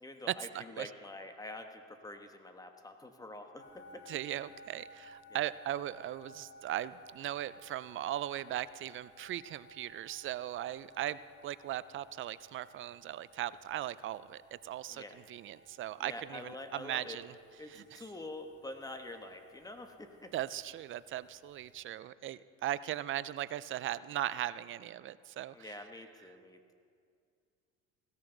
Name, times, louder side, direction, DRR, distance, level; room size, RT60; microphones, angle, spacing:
voice 1, 0.0-4.1 5.3-5.4 14.9-15.2 16.0-17.2 17.6-20.3 25.5-26.7, left 2 dB, 10° left, 6 dB, 1.2 m, -46 dB
voice 2, 0.5-0.9 4.1-11.2 11.4-17.3 17.7-18.0 20.3-25.7, right 13 dB, 40° right, 17 dB, 0.4 m, -38 dB
sound 1, 3.6-21.9, left 1 dB, 35° left, 2.2 m, -59 dB
17.0 x 13.5 x 3.9 m, 2.3 s
supercardioid pair, 105°, 30 cm